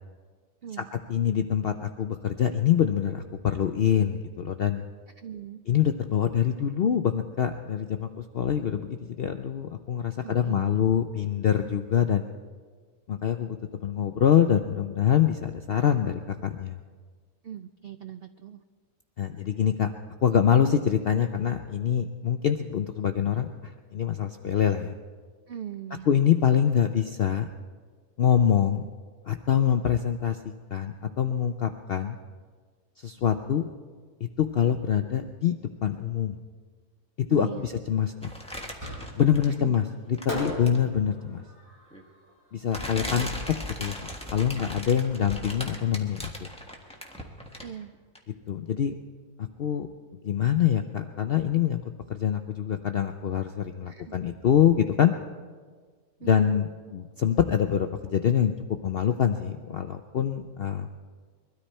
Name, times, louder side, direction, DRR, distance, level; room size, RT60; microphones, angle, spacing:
voice 1, 1.1-4.8 5.7-8.1 8.3-12.2 13.1-16.8 19.2-19.9 20.2-24.9 26.1-27.5 28.2-28.8 29.3-30.4 30.7-32.2 33.0-33.6 34.4-35.5 35.8-36.4 37.3-38.3 39.2-41.4 42.5-43.3 43.8-43.9 44.3-46.3 48.5-48.9 49.6-49.9 50.2-51.8 52.1-55.1 56.2-58.5 58.8-60.9, left 9 dB, 65° left, 7 dB, 0.6 m, -25 dB
voice 2, 5.2-5.6 10.2-10.8 16.0-16.2 17.4-18.6 25.5-26.1 37.3-37.7 39.6-39.8 47.6-47.9 53.9-54.2 56.2-56.5, right 9 dB, 85° right, 10 dB, 0.5 m, -40 dB
sound 1, 38.2-39.7 40.1-40.9 41.9-42.0 42.7-47.8 48.1-48.2, left 1 dB, 5° left, 1.4 m, -38 dB
Fireworks, 38.8-39.5 40.3-43.4, left 1 dB, 15° right, 6.5 m, -39 dB
22.0 x 13.0 x 4.3 m, 1.5 s
omnidirectional pair, 1.6 m